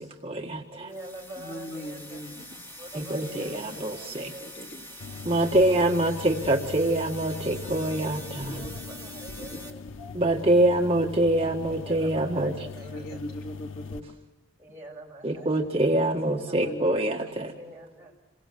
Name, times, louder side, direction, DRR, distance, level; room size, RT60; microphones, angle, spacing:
voice 1, 0.0-0.9 2.9-4.3 5.2-8.6 10.1-12.5 15.2-17.5, right 1 dB, 30° right, 1 dB, 1.8 m, -25 dB
voice 2, 0.7-2.2 2.8-4.5 8.3-9.8 11.6-13.2 14.6-15.6 16.0-16.7 17.2-18.1, right 1 dB, 10° right, -1 dB, 6.7 m, -45 dB
sound 1, 0.9-9.7, equal, 10° left, 2.9 m, -44 dB
voice 3, 1.4-2.6 3.0-3.8 4.2-4.8 8.4-8.7 9.4-9.6 10.0-10.1 12.7-14.0 16.5-17.3 17.6-17.7, equal, 50° left, -1 dB, 3.5 m, -41 dB
sound 2, 5.0-14.0, left 4 dB, 85° left, 0.9 m, -40 dB
28.5 x 23.0 x 7.9 m, 1.2 s
head